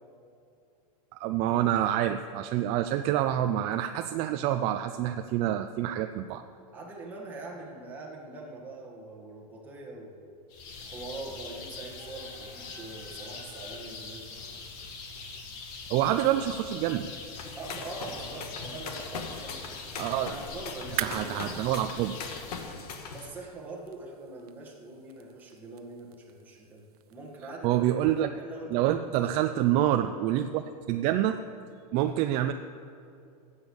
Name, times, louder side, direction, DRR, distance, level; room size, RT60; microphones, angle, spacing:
voice 1, 1.2-6.4 15.9-17.1 20.0-20.3 21.0-22.2 27.6-28.3 28.7-31.4 31.9-32.5, right 12 dB, 30° right, 7 dB, 0.3 m, -27 dB
voice 2, 6.7-10.3 10.8-14.4 17.6-19.6 20.2-21.4 22.5-22.8 23.1-26.8 27.1-28.9 29.1-29.2, right 2 dB, 10° right, -4 dB, 1.6 m, -43 dB
sound 1, 10.5-22.6, left 4 dB, 45° left, 1.7 m, -43 dB
sound 2, 17.3-23.3, left 5 dB, 80° left, 1.5 m, -40 dB
sound 3, 20.9-27.5, right 13 dB, 75° right, 0.6 m, -43 dB
12.0 x 8.1 x 7.1 m, 2.5 s
supercardioid pair, 155°, 19 cm